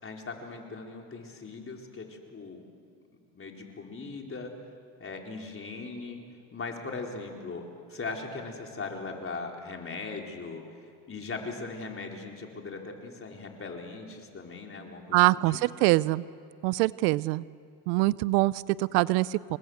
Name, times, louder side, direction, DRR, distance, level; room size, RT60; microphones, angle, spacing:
voice 1, 0.0-2.6 3.3-4.5 5.0-6.2 6.5-7.6 7.9-10.6 11.1-15.6, left 4 dB, 25° left, 1 dB, 4.4 m, -39 dB
voice 2, 15.1-16.2 16.6-17.4 17.9-19.6, right 20 dB, 80° right, 19 dB, 0.7 m, -24 dB
29.0 x 21.0 x 8.1 m, 2.3 s
supercardioid pair, 95°, 47 cm